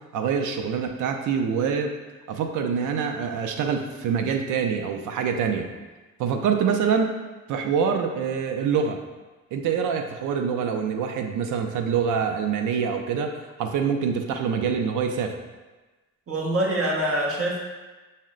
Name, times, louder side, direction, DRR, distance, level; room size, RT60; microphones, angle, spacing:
voice 1, 0.1-1.9 2.3-5.7 6.2-7.2 7.5-9.0 9.5-15.4, right 6 dB, 80° right, 5 dB, 0.5 m, -25 dB
voice 2, 16.3-17.6, right 1 dB, 50° right, -2 dB, 1.1 m, -24 dB
5.3 x 2.1 x 3.7 m, 1.2 s
cardioid pair, 90°, 30 cm